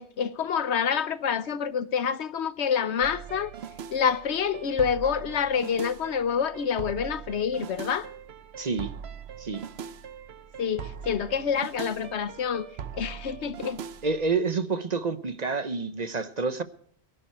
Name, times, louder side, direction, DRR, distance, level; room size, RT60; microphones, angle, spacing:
voice 1, 0.0-3.5 3.9-8.1 10.6-12.7 12.9-13.8, left 7 dB, 85° left, 1.2 m, -27 dB
sound 1, 3.0-14.3, right 7 dB, 70° right, 1.0 m, -41 dB
voice 2, 8.6-8.9 9.4-9.6 14.0-16.6, right 4 dB, 40° right, 0.9 m, -28 dB
22.5 x 11.5 x 4.4 m
omnidirectional pair, 1.1 m